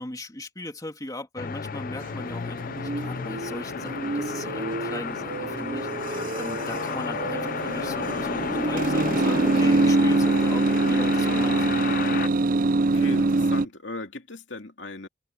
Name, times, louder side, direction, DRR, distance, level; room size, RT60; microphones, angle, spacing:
voice 1, 0.0-11.9, left 1 dB, 20° left, 2.8 m, -38 dB
sound 1, 1.4-12.3, left 6 dB, 45° left, 0.4 m, -32 dB
sound 2, 2.0-13.7, right 2 dB, 45° right, 0.6 m, -25 dB
voice 2, 12.9-15.1, left 2 dB, 70° left, 2.6 m, -37 dB
head